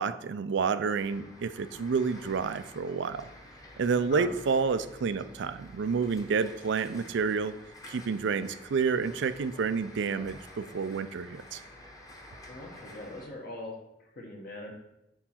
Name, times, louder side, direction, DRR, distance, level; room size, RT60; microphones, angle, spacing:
voice 1, 0.0-3.3 3.8-7.5 7.9-11.6, right 5 dB, 65° right, 13 dB, 0.4 m, -29 dB
sound 1, 0.9-13.3, left 1 dB, 20° left, 0.9 m, -50 dB
voice 2, 4.0-4.3 12.5-13.7 14.2-14.7, left 2 dB, 55° left, 0 dB, 1.0 m, -41 dB
4.7 x 4.6 x 5.7 m, 0.86 s
head